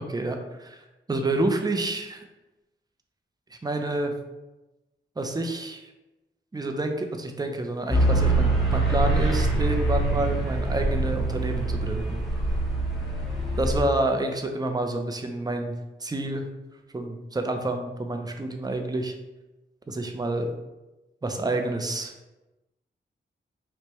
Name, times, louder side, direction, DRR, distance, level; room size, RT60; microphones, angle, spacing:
voice 1, 0.0-2.2 3.6-4.1 5.2-5.8 6.5-12.2 13.6-15.7 16.0-16.5 16.9-19.1 19.9-20.5 21.2-22.1, right 2 dB, 20° right, 4 dB, 0.5 m, -28 dB
sound 1, 7.9-13.8, right 2 dB, ahead, 0.9 m, -24 dB
4.5 x 2.1 x 3.0 m, 1.0 s
wide cardioid pair, 75°, 20 cm